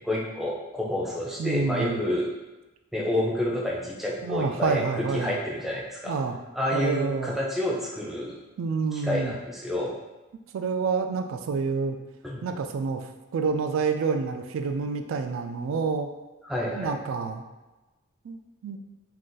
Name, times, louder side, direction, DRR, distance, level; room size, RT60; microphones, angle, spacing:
voice 1, 0.0-2.3 2.9-6.1 6.5-8.4 8.9-10.0 12.2-12.4 16.4-16.9, left 1 dB, ahead, -4 dB, 0.4 m, -29 dB
voice 2, 1.4-2.0 4.2-5.3 6.0-6.4 6.7-7.3 8.6-9.3 10.5-12.0 12.4-16.1 16.8-17.4 18.2-18.8, right 5 dB, 75° right, 6 dB, 0.3 m, -28 dB
2.5 x 2.5 x 3.8 m, 1.1 s
head